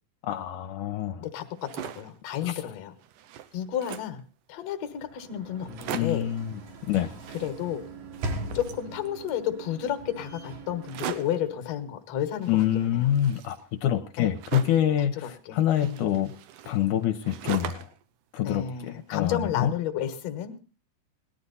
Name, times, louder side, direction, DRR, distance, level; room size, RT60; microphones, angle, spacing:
voice 1, 0.2-1.2 2.4-2.6 5.9-6.5 6.9-7.1 12.5-16.3 16.7-17.9 18.3-19.7, left 11 dB, 80° left, 6 dB, 2.3 m, -26 dB
voice 2, 1.2-2.9 3.5-4.2 4.5-6.3 7.4-7.8 8.5-13.1 14.2-14.3 15.1-16.1 18.4-20.5, left 10 dB, 60° left, 8 dB, 2.2 m, -32 dB
sound 1, 1.4-2.2 2.7-2.8 3.0-4.2 4.9-5.0 5.2-5.3 5.6-6.3 7.1-7.9 8.1-9.4 10.8-11.5 12.4-14.9 15.7-18.0 18.4-19.3, right 10 dB, 85° right, 2.5 m, -40 dB
Sliding door / Slam, 4.8-11.8, right 2 dB, 65° right, 3.3 m, -40 dB
18.5 x 12.0 x 4.1 m, 0.36 s
omnidirectional pair, 3.7 m